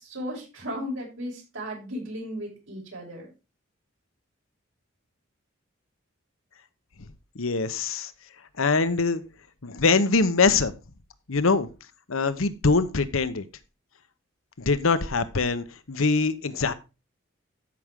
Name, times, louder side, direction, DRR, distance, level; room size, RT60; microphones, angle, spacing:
voice 1, 0.0-3.3, equal, 75° right, 6.7 m, -35 dB
voice 2, 7.3-8.1 8.6-9.2 9.6-10.7 11.3-11.7 12.1-13.4 14.6-16.7, left 4 dB, 80° left, 0.9 m, -23 dB
13.5 x 6.1 x 3.7 m
head